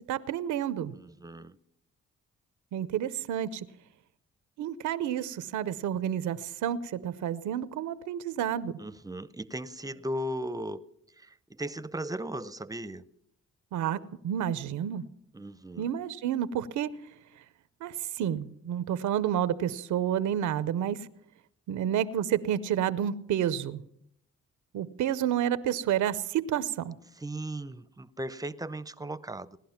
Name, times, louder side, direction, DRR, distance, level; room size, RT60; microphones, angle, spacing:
voice 1, 0.1-0.9 2.7-3.7 4.6-8.8 13.7-15.0 15.8-17.0 17.8-21.1 21.7-23.8 24.7-26.9, right 10 dB, 85° right, 0.7 m, -30 dB
voice 2, 0.9-1.6 8.8-10.9 11.2-13.0 15.3-15.9 27.2-29.6, right 1 dB, 10° right, 0.7 m, -37 dB
18.5 x 11.5 x 5.8 m
cardioid pair, 65°, 29 cm